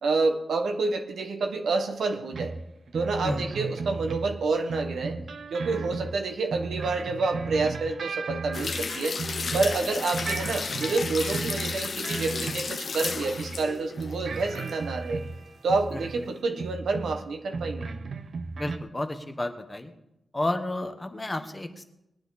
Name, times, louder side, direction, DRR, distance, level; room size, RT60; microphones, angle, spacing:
voice 1, 0.0-2.6 2.9-5.2 5.5-9.2 9.5-15.2 15.6-17.9, right 3 dB, 80° right, 5 dB, 1.4 m, -28 dB
sound 1, 2.3-9.8 10.1-13.7 14.0-16.3 16.6-17.2 17.5-18.8, right 4 dB, 60° right, 0.8 m, -35 dB
sound 2, 8.5-14.8 15.1-15.2, left 4 dB, 50° left, 0.9 m, -33 dB
voice 2, 18.6-19.9 20.3-21.8, left 1 dB, 15° left, 7 dB, 1.1 m, -31 dB
20.0 x 10.0 x 4.1 m, 0.86 s
wide cardioid pair, 130°, 0 cm